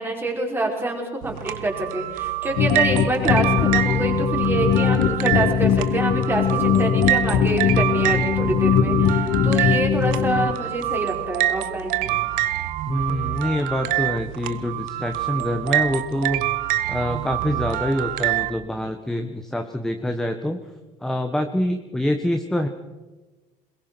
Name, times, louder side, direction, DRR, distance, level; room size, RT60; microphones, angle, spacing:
voice 1, 0.0-12.2, right 2 dB, 15° right, 1 dB, 5.1 m, -26 dB
sound 1, 1.2-18.5, right 14 dB, 80° right, 1.1 m, -26 dB
sound 2, 2.6-10.5, left 8 dB, 75° left, 1.6 m, -21 dB
voice 2, 12.9-16.4 16.9-20.6 21.0-22.7, left 1 dB, 5° left, 6 dB, 1.4 m, -25 dB
22.0 x 21.5 x 6.2 m, 1.2 s
cardioid pair, 125°, 14 cm